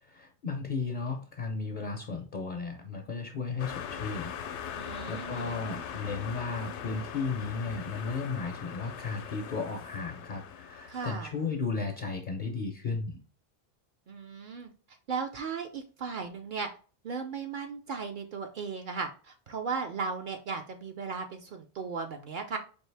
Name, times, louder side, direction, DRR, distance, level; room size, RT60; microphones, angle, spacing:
voice 1, 0.0-4.3 5.1-13.2, left 4 dB, 55° left, 4 dB, 0.6 m, -34 dB
sound 1, 3.6-11.5, left 8 dB, 85° left, 0.9 m, -41 dB
voice 2, 4.7-5.6 10.9-11.3 14.1-14.7 15.1-16.7 17.0-22.6, right 5 dB, 60° right, 5 dB, 0.6 m, -36 dB
4.5 x 2.7 x 3.2 m, 0.38 s
omnidirectional pair, 1.1 m